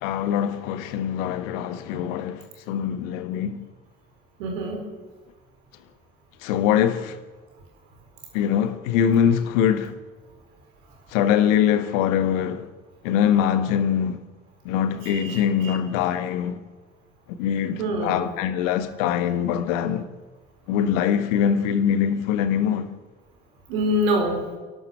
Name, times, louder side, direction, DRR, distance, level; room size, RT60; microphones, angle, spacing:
voice 1, 0.0-3.6 6.4-7.1 8.3-9.9 11.1-12.7 13.0-14.2 14.6-16.6 17.4-20.0 20.7-22.9, left 9 dB, 70° left, 1.4 m, -23 dB
voice 2, 4.4-4.8 15.0-15.7 17.8-18.2 23.7-24.4, equal, 70° right, 4.6 m, -25 dB
28.5 x 12.0 x 7.9 m
figure-of-eight pair, 45°, 40 cm